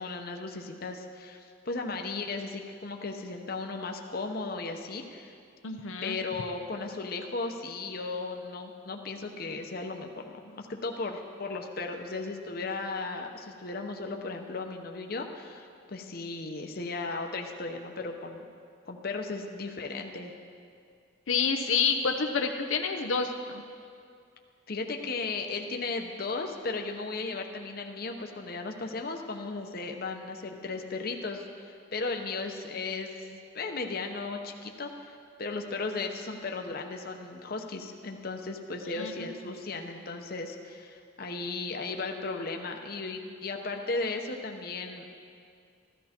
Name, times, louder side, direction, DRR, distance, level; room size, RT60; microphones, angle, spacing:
voice 1, 0.0-5.4 6.0-18.5 18.8-20.3 24.7-45.0, left 3 dB, 50° left, 3 dB, 0.9 m, -36 dB
voice 2, 5.6-6.2 21.3-23.6 38.9-39.3, left 5 dB, 80° left, 4 dB, 0.7 m, -28 dB
15.0 x 13.0 x 4.4 m, 2.3 s
head